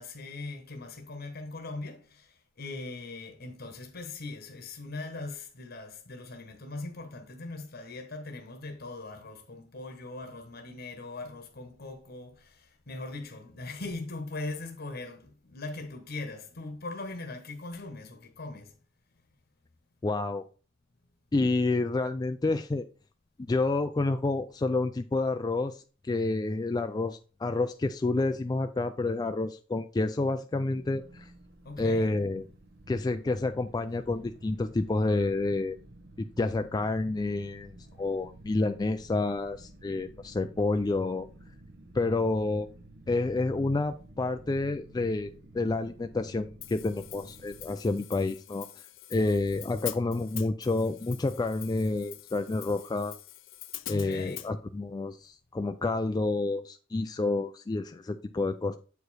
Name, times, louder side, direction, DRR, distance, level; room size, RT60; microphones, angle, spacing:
voice 1, 0.0-18.7 31.6-32.2 37.9-38.0 53.9-54.4, left 2 dB, 55° left, 1.1 m, -40 dB
voice 2, 20.0-20.4 21.3-22.8 23.4-31.3 31.8-32.4 32.9-35.8 36.4-37.7 38.0-41.3 41.9-42.7 43.1-48.7 49.1-53.1 53.9-58.8, left 2 dB, 20° left, 0.3 m, -29 dB
sound 1, 30.8-47.7, right 1 dB, 60° right, 1.0 m, -52 dB
Hi-hat, 46.6-54.5, left 14 dB, 75° left, 0.5 m, -45 dB
7.9 x 4.8 x 4.1 m
head